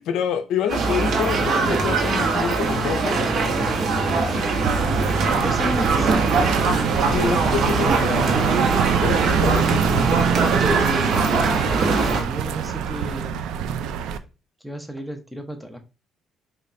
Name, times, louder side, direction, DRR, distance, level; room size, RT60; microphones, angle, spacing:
voice 1, 0.0-3.8 7.1-8.6 9.0-10.4, left 8 dB, 85° left, 0.4 m, -28 dB
sound 1, 0.7-12.2, right 3 dB, 65° right, 0.9 m, -21 dB
sound 2, 4.6-14.2, right 8 dB, 90° right, 0.3 m, -25 dB
voice 2, 5.2-6.3 11.2-13.5 14.6-15.8, equal, ahead, 0.8 m, -33 dB
5.1 x 2.4 x 2.6 m
cardioid pair, 90°, 0 cm